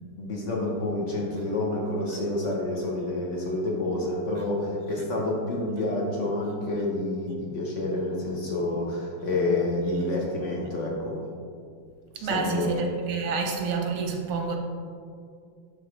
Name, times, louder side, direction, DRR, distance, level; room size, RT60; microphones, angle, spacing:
voice 1, 0.2-11.2 12.2-12.7, left 2 dB, 55° left, -2 dB, 0.8 m, -28 dB
voice 2, 12.2-14.6, right 4 dB, 90° right, 2 dB, 1.7 m, -28 dB
11.0 x 3.7 x 3.1 m, 2.2 s
omnidirectional pair, 2.3 m